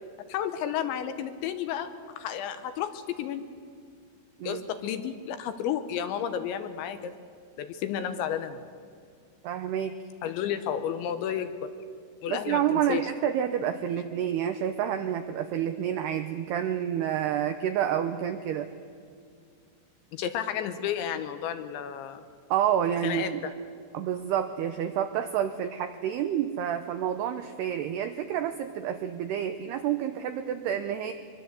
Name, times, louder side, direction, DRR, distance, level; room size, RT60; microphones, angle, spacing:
voice 1, 0.3-1.9 2.2-3.4 4.4-7.1 7.6-8.6 10.2-11.7 12.2-13.0 20.1-22.2 23.0-23.5, left 9 dB, 75° left, 9 dB, 2.9 m, -32 dB
voice 2, 9.4-9.9 12.3-18.7 22.5-23.4 23.9-31.1, right 10 dB, 90° right, 8 dB, 2.3 m, -29 dB
24.5 x 23.0 x 8.1 m, 2.2 s
omnidirectional pair, 5.9 m